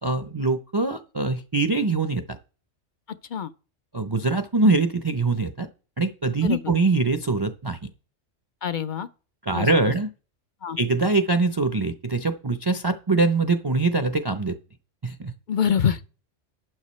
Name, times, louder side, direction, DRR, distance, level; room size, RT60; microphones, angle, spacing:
voice 1, 0.0-2.4 3.9-5.7 6.0-7.9 9.5-10.1 10.8-14.6 15.0-15.3, right 3 dB, 25° right, 0.5 m, -23 dB
voice 2, 8.6-9.1 9.5-9.9 10.6-10.8 15.5-16.0, left 8 dB, 50° left, 0.6 m, -25 dB
12.0 x 9.1 x 3.2 m
omnidirectional pair, 1.3 m